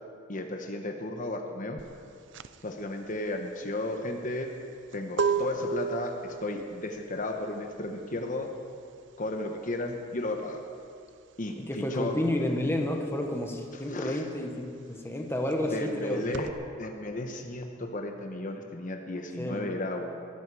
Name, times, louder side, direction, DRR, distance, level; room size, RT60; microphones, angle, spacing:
voice 1, 0.3-1.8 2.6-4.5 4.9-8.5 9.2-10.6 11.4-12.2 13.7-14.2 15.7-16.5 16.8-20.1, left 2 dB, 45° left, 4 dB, 1.1 m, -34 dB
sound 1, 1.8-12.0 12.3-16.5, right 5 dB, 65° right, 0.6 m, -35 dB
voice 2, 11.5-16.2 19.4-19.6, left 1 dB, 15° left, 2 dB, 1.3 m, -31 dB
21.5 x 13.5 x 4.8 m, 2.4 s
head